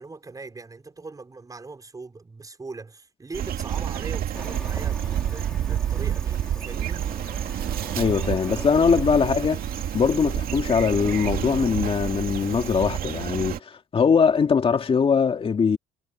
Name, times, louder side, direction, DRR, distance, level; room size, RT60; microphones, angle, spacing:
voice 1, 0.0-7.1 8.6-9.0, right 3 dB, 20° right, 6.0 m, -41 dB
sound 1, 3.3-13.6, right 10 dB, 60° right, 2.4 m, -29 dB
Cricket, 4.3-12.8, left 1 dB, 5° left, 5.5 m, -43 dB
voice 2, 8.0-9.6 9.9-15.8, left 6 dB, 35° left, 2.7 m, -21 dB
cardioid pair, 110°, 17 cm